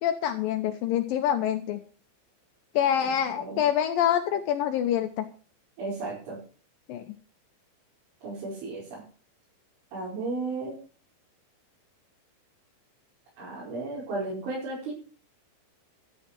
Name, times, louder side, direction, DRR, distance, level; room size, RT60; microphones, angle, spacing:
voice 1, 0.0-1.8 2.8-5.3 6.9-7.0, left 10 dB, 90° left, 7 dB, 2.0 m, -26 dB
voice 2, 5.8-6.4 8.2-9.0 9.9-10.7 13.4-14.9, right 3 dB, 80° right, -8 dB, 7.8 m, -34 dB
14.0 x 9.0 x 6.1 m, 0.40 s
omnidirectional pair, 5.3 m